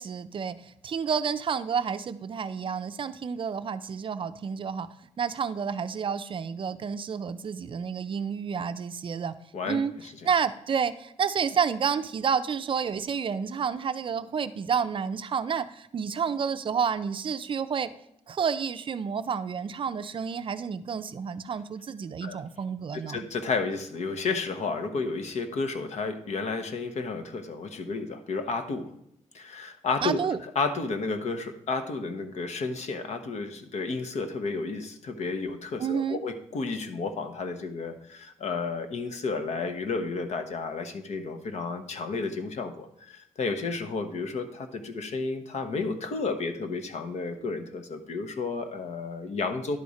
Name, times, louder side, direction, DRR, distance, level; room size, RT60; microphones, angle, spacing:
voice 1, 0.0-4.9 5.2-9.3 9.7-9.9 10.2-17.9 18.3-23.3 30.0-30.4 35.8-36.2, right 6 dB, 45° right, 11 dB, 0.4 m, -30 dB
voice 2, 9.5-10.1 22.2-22.4 22.9-28.9 29.3-49.8, left 4 dB, 65° left, 8 dB, 0.9 m, -32 dB
11.0 x 4.1 x 4.9 m, 0.74 s
wide cardioid pair, 130°, 12 cm